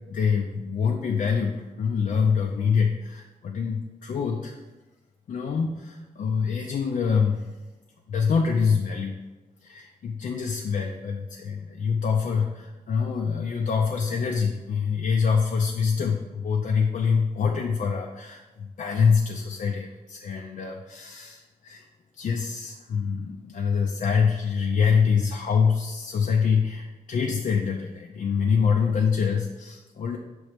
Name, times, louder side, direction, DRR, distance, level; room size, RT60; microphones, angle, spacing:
voice 1, 0.1-4.6 5.3-7.5 8.1-9.2 9.6-21.8 22.1-30.2, left 6 dB, 65° left, 1 dB, 0.5 m, -25 dB
6.1 x 3.1 x 4.9 m, 1.1 s
cardioid pair, 100°, 14 cm